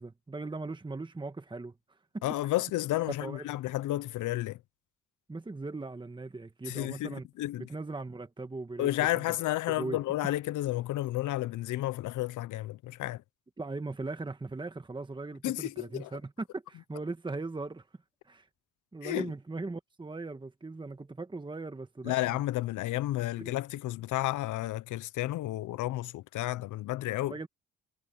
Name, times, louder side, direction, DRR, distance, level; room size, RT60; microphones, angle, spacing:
voice 1, 0.0-1.7 2.1-2.5 3.2-3.5 5.3-7.3 7.6-8.9 9.1-9.4 9.7-10.0 13.6-17.8 18.2-18.5 18.9-22.4 23.4-23.6 27.3-27.5, right 3 dB, 15° right, 1.6 m, -39 dB
voice 2, 2.2-4.6 6.7-7.7 8.8-13.2 15.4-16.1 19.0-19.3 22.0-27.4, left 16 dB, 80° left, 0.7 m, -32 dB
cardioid pair, 90°, 30 cm